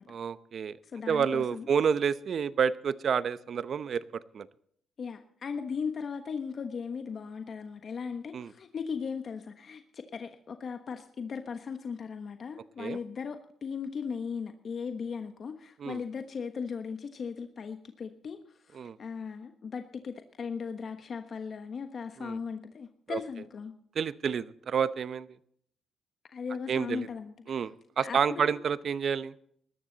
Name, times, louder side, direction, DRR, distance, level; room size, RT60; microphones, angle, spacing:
voice 1, 0.1-0.8 1.1-4.5 8.3-8.5 12.8-13.0 15.8-16.0 18.7-19.0 22.2-22.4 23.1-23.2 23.9-25.3 26.7-27.1 27.5-29.3, right 7 dB, 55° right, 15 dB, 0.8 m, -29 dB
voice 2, 0.8-1.7 5.0-23.7 26.3-27.6 28.0-28.5, left 6 dB, 50° left, 7 dB, 1.2 m, -38 dB
19.0 x 13.5 x 4.1 m, 0.66 s
cardioid pair, 90°, 0 cm